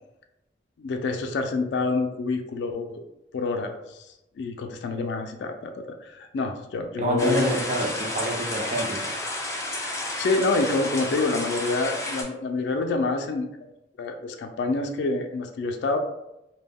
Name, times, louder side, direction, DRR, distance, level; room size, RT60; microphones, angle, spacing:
voice 1, 0.8-3.0 3.3-4.1 4.4-7.5 10.2-13.7 14.0-16.0, left 3 dB, 80° left, 5 dB, 0.3 m, -27 dB
voice 2, 7.0-9.1, right 1 dB, 40° right, 1 dB, 0.4 m, -27 dB
sound 1, 7.2-12.2, left 1 dB, 15° left, 0.4 m, -31 dB
2.1 x 2.1 x 3.4 m, 0.90 s
head